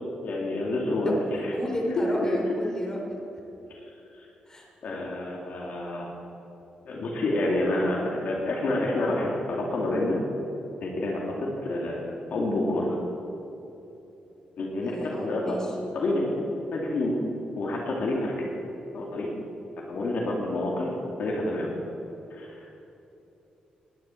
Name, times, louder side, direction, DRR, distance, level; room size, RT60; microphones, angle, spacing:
voice 1, 0.2-1.2 2.0-2.3 3.7-3.8 4.2-4.3 4.8-6.1 6.8-10.2 10.8-11.4 11.6-13.0 14.6-15.6 15.9-16.4 16.7-17.2 17.6-18.3 18.9-19.3 19.9-21.7 22.3-22.6, left 1 dB, 65° left, -2 dB, 2.3 m, -28 dB
voice 2, 1.1-3.0 4.5-4.7 14.8-15.8, left 1 dB, 20° left, -1 dB, 3.4 m, -32 dB
19.0 x 10.0 x 4.5 m, 3.0 s
cardioid pair, 90°, 3 cm